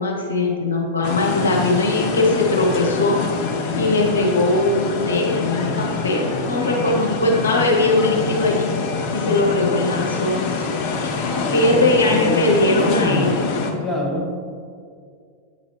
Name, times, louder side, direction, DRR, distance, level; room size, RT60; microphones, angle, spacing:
voice 1, 0.0-3.2 3.7-8.7 9.1-10.7 11.5-13.5, left 2 dB, 75° left, 0 dB, 0.8 m, -20 dB
sound 1, 1.0-13.7, left 5 dB, 45° left, 0.7 m, -25 dB
voice 2, 11.3-11.6 12.1-12.2 12.4-13.3 13.8-14.3, left 1 dB, 15° left, -3 dB, 1.1 m, -26 dB
8.4 x 4.1 x 3.0 m, 2.2 s
figure-of-eight pair, 90°, 0 cm